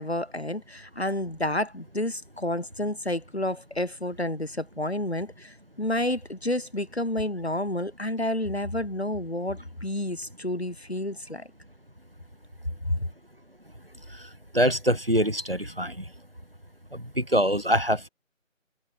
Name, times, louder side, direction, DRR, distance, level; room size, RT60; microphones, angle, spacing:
voice 1, 0.0-11.5 13.0-13.1, left 1 dB, 50° left, 1.8 m, -30 dB
voice 2, 14.5-16.0 16.9-18.1, equal, 45° right, 0.8 m, -24 dB
figure-of-eight pair, 180°, 40 cm